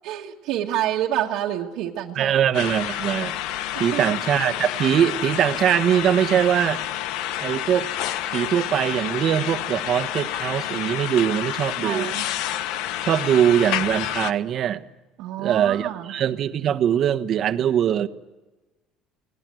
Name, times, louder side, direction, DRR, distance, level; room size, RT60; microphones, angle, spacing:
voice 1, 0.0-2.3 3.7-4.1 11.8-12.3 15.2-16.1, right 12 dB, 75° right, -3 dB, 1.6 m, -28 dB
voice 2, 2.1-3.4 3.8-6.8 7.4-7.9 8.3-12.1 13.0-14.9 15.4-18.1, right 9 dB, 45° right, 11 dB, 1.2 m, -22 dB
sound 1, 2.5-14.3, left 12 dB, 75° left, 0.9 m, -29 dB
30.0 x 20.0 x 7.8 m, 1.1 s
cardioid pair, 135°, 0 cm